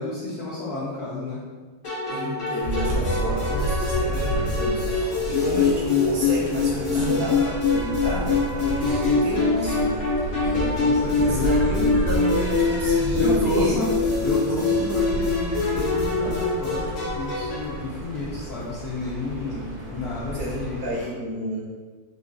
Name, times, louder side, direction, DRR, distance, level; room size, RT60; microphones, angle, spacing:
voice 1, 0.0-1.4 6.7-7.2 8.8-9.0 9.6-9.7 10.8-11.5 13.1-20.8, left 2 dB, 85° left, -7 dB, 0.8 m, -31 dB
sound 1, 1.8-17.8, left 4 dB, 40° left, 1.5 m, -24 dB
voice 2, 2.1-10.8 11.1-13.8 14.2-14.8 19.4-19.7 20.3-21.6, right 1 dB, 70° right, -5 dB, 1.3 m, -31 dB
sound 2, 2.6-21.1, right 1 dB, 85° right, 1.8 m, -31 dB
4.9 x 2.3 x 2.4 m, 1.4 s
omnidirectional pair, 2.4 m